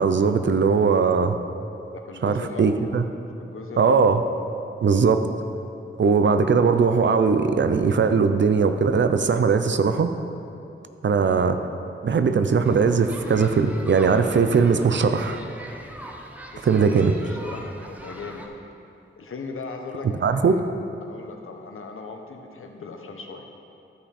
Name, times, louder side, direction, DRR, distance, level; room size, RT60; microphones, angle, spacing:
voice 1, 0.0-1.4 2.2-3.0 3.8-4.2 4.8-5.3 6.0-10.1 11.0-11.6 12.0-15.4 16.6-17.2 20.2-20.6, right 5 dB, 60° right, 9 dB, 0.5 m, -20 dB
voice 2, 1.9-2.8 3.4-4.0 16.5-16.7 17.2-18.5 19.2-20.6 21.0-23.4, left 4 dB, 80° left, 4 dB, 0.9 m, -38 dB
sound 1, 12.6-18.5, equal, 5° right, 0.8 m, -41 dB
13.0 x 5.8 x 4.2 m, 2.7 s
wide cardioid pair, 90°, 21 cm